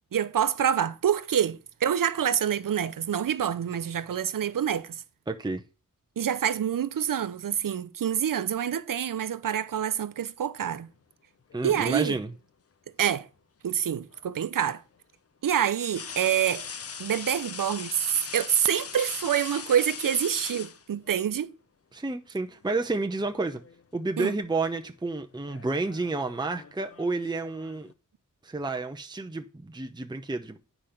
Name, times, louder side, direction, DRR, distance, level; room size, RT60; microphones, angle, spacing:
voice 1, 0.1-5.0 6.2-10.9 11.6-12.2 13.0-13.3 13.6-14.8 15.4-16.7 17.0-21.5 24.2-24.3, right 9 dB, 85° right, 0.7 m, -27 dB
voice 2, 5.3-5.6 11.5-12.3 21.9-23.6 23.9-27.9 28.4-30.6, right 3 dB, 15° right, 0.8 m, -30 dB
sound 1, 11.5-12.4 14.1-14.3 15.8-21.3 22.5-22.7 23.1-23.8 24.1-24.5 25.3-27.9, left 6 dB, 45° left, 0.7 m, -41 dB
9.7 x 5.2 x 5.8 m
wide cardioid pair, 115°, 32 cm